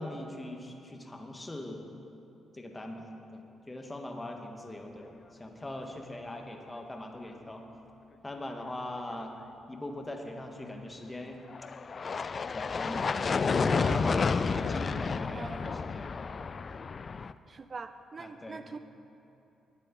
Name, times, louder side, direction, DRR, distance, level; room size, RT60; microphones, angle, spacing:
voice 1, 0.0-1.8 2.5-5.1 5.4-7.7 8.2-9.3 9.7-11.4 12.5-13.1 13.5-16.4 18.2-18.7, left 1 dB, 20° left, 3 dB, 1.6 m, -40 dB
sound 1, 11.5-17.3, left 5 dB, 45° left, 0.3 m, -30 dB
voice 2, 17.5-18.8, right 4 dB, 40° right, 10 dB, 0.4 m, -43 dB
19.0 x 7.6 x 4.0 m, 2.9 s
hypercardioid pair, 45°, 0 cm